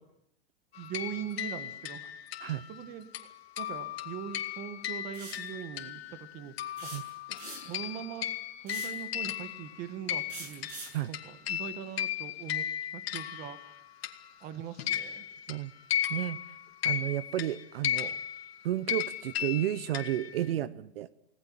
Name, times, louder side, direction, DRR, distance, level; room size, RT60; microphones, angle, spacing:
sound 1, 0.7-6.3 6.6-14.4 14.8-20.5, left 11 dB, 70° left, 2.4 m, -36 dB
voice 1, 0.8-2.1 2.7-3.3 3.6-6.5 6.8-6.9 7.6-8.3 8.6-10.7 11.1-12.7 12.9-13.6 14.4-15.2, right 9 dB, 25° right, 11 dB, 1.4 m, -41 dB
sound 2, 5.1-5.5 6.8-7.8 8.7-9.0 10.3-11.0, right 4 dB, 40° right, 7.8 m, -43 dB
voice 2, 16.8-18.2 18.6-21.1, right 13 dB, 65° right, 16 dB, 0.9 m, -32 dB
30.0 x 18.5 x 7.4 m, 0.78 s
supercardioid pair, 175°, 32 cm